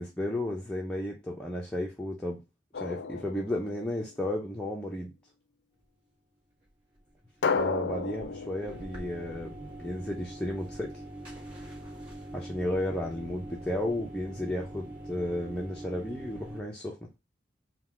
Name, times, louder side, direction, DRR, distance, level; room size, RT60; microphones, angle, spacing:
voice 1, 0.0-2.4 2.7-5.1 7.5-10.9 12.3-17.1, left 1 dB, 5° left, -2 dB, 0.6 m, -33 dB
Drum, 2.7-4.3 7.4-10.2, left 5 dB, 70° left, 0.4 m, -34 dB
sound 1, 7.0-16.6, right 1 dB, 30° right, 1.9 m, -44 dB
3.9 x 2.3 x 4.6 m, 0.25 s
head